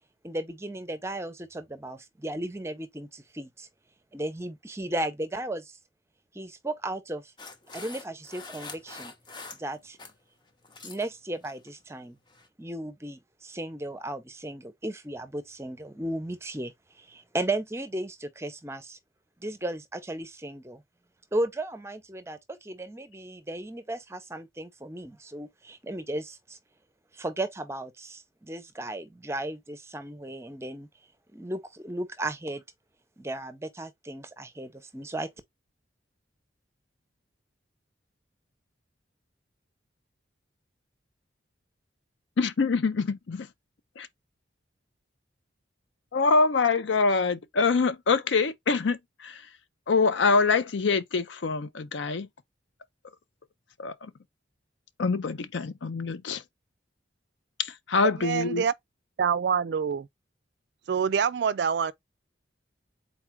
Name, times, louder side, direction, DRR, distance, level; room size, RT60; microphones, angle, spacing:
voice 1, 0.2-3.7 4.1-5.8 6.3-7.3 7.7-9.1 9.6-10.0 10.8-12.2 12.6-19.0 19.4-20.8 21.3-26.6 27.1-30.9 31.3-32.6 33.2-35.3, right 1 dB, 15° right, 0.6 m, -35 dB
sound 1, 7.4-10.2 10.5-11.1 11.4-11.7 12.3-12.5, left 3 dB, 25° left, 0.6 m, -44 dB
voice 2, 42.4-43.5 44.0-44.1 46.1-49.4 49.9-52.3 53.8-54.1 55.0-56.4 57.6-58.6, left 4 dB, 70° left, 0.5 m, -25 dB
voice 3, 58.2-58.7 59.2-60.1 60.9-61.9, right 7 dB, 60° right, 0.3 m, -26 dB
4.1 x 2.4 x 4.4 m
head